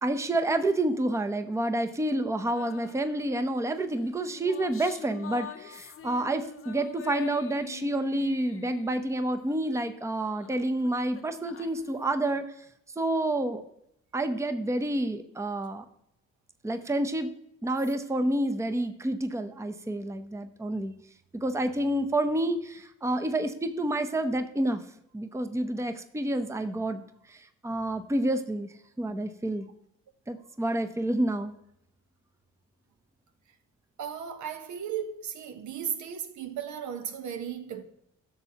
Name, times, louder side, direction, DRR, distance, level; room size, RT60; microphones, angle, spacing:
voice 1, 0.0-12.4 13.0-13.6 14.1-15.8 16.6-17.3 17.6-20.9 21.3-24.8 25.1-27.0 27.3-28.7 29.0-29.7 30.3-31.5, right 1 dB, 10° right, 0.7 m, -29 dB
sound 1, 2.5-3.4 4.0-9.9 10.2-12.1, left 8 dB, 45° left, 0.7 m, -44 dB
voice 2, 34.0-37.8, right 8 dB, 70° right, 1.0 m, -35 dB
11.5 x 7.0 x 2.9 m
cardioid pair, 90°, 30 cm